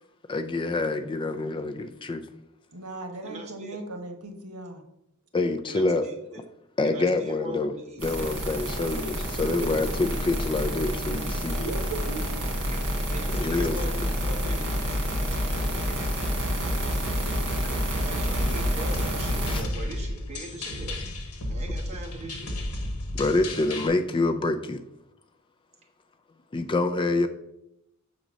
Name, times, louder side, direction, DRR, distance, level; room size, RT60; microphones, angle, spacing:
voice 1, 0.3-2.2 5.3-6.1 6.8-11.6 13.3-14.0 17.6-17.7 19.5-19.6 23.1-24.8 26.5-27.3, left 2 dB, 20° left, 10 dB, 0.4 m, -27 dB
voice 2, 2.7-4.8 9.3-9.7 11.6-12.2 18.4-18.5, right 2 dB, 80° right, 5 dB, 1.1 m, -37 dB
voice 3, 3.2-3.8 5.7-6.4 6.8-8.1 12.7-15.0 15.5-15.6 15.9-16.1 18.0-21.0 21.5-22.5, right 2 dB, 30° right, -1 dB, 1.3 m, -41 dB
sound 1, 8.0-19.6, equal, 65° right, 2.0 m, -28 dB
sound 2, 18.2-23.9, left 1 dB, 80° left, 1.3 m, -33 dB
6.5 x 4.0 x 6.0 m, 0.82 s
head